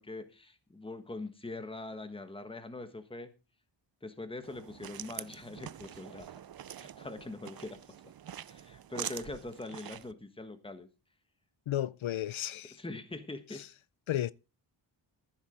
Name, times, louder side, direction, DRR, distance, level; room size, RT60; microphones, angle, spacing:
voice 1, 0.0-3.3 4.0-6.3 6.7-7.8 8.5-10.9 12.8-13.6, left 2 dB, 10° left, 1.3 m, -43 dB
sound 1, 4.4-10.1, right 10 dB, 50° right, 0.5 m, -45 dB
voice 2, 11.7-12.8 13.5-13.7 14.1-14.3, left 12 dB, 75° left, 0.6 m, -33 dB
14.5 x 7.5 x 5.0 m
wide cardioid pair, 150°, 48 cm